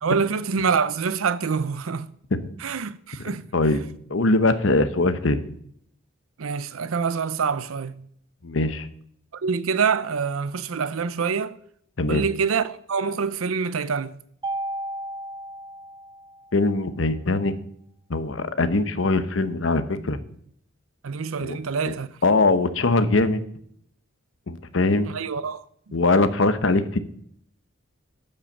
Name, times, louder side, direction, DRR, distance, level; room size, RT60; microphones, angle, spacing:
voice 1, 0.0-2.1 2.6-3.5 6.4-8.1 9.3-11.6 12.1-14.2 21.0-22.1 25.0-26.0, right 5 dB, 90° right, 0.6 m, -26 dB
voice 2, 4.1-5.4 8.4-8.9 12.0-12.2 16.5-17.5 18.1-20.2 21.4-21.6 22.2-23.4 24.5-25.1 25.9-27.0, left 2 dB, 65° left, 0.9 m, -21 dB
Mallet percussion, 14.4-16.7, right 1 dB, 20° right, 0.4 m, -34 dB
12.0 x 5.5 x 7.2 m
head